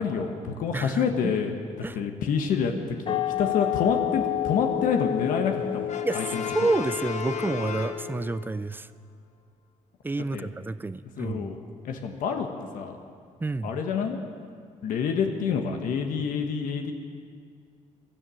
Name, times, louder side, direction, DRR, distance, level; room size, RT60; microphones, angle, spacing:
voice 1, 0.0-6.7 10.3-10.5 11.2-11.6 11.8-13.0 13.6-14.2 14.8-16.9, left 6 dB, 80° left, 4 dB, 1.3 m, -28 dB
voice 2, 0.7-1.3 1.8-2.0 6.0-8.9 10.0-11.6 13.4-13.7, right 3 dB, 15° right, 16 dB, 0.4 m, -29 dB
sound 1, 3.1-8.5, left 12 dB, 40° left, 0.8 m, -30 dB
Brass instrument, 5.9-8.5, left 6 dB, 60° left, 1.2 m, -35 dB
17.0 x 12.0 x 6.4 m, 2.2 s
cardioid pair, 90°, 14 cm